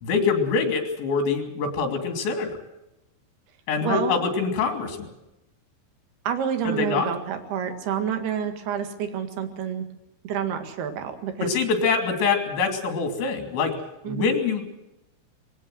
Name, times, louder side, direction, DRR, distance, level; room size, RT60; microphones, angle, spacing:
voice 1, 0.0-2.5 3.7-5.1 6.6-7.1 11.4-13.7 14.0-14.6, left 5 dB, 70° left, 6 dB, 5.0 m, -24 dB
voice 2, 3.8-4.2 6.3-9.9 10.2-11.5 14.1-14.3, right 8 dB, 60° right, 7 dB, 3.5 m, -28 dB
21.5 x 17.5 x 7.8 m, 0.90 s
omnidirectional pair, 5.6 m